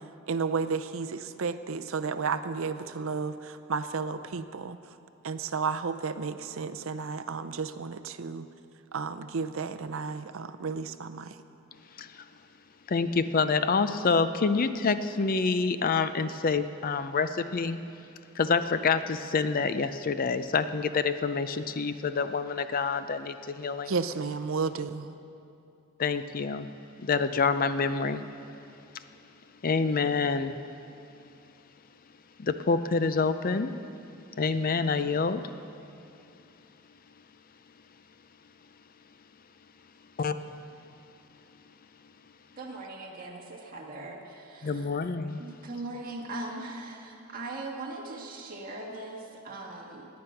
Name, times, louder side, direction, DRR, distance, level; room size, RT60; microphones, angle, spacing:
voice 1, 0.3-4.8 5.2-8.5 8.9-11.4 23.9-25.1, right 5 dB, 65° right, 10 dB, 0.6 m, -32 dB
voice 2, 12.9-17.8 18.3-23.9 26.0-26.7 27.0-28.2 29.6-30.6 32.4-33.7 34.4-35.4 40.2-40.3 44.6-45.4, left 4 dB, 40° left, 11 dB, 0.5 m, -27 dB
voice 3, 42.6-44.9 45.4-50.1, right 2 dB, 40° right, -1 dB, 1.8 m, -40 dB
17.5 x 9.5 x 5.8 m, 2.7 s
head